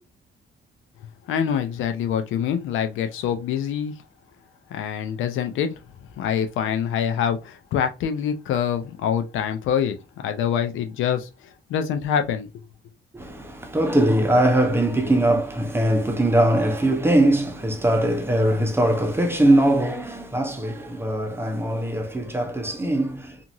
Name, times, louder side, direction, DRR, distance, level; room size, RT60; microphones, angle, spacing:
voice 1, 1.3-3.9 4.7-5.7 6.2-10.0 10.2-11.3 11.7-12.5, left 8 dB, 80° left, 0.5 m, -25 dB
voice 2, 13.1-23.5, right 1 dB, 10° right, 0.8 m, -21 dB
2.8 x 2.6 x 2.5 m
cardioid pair, 90°, 20 cm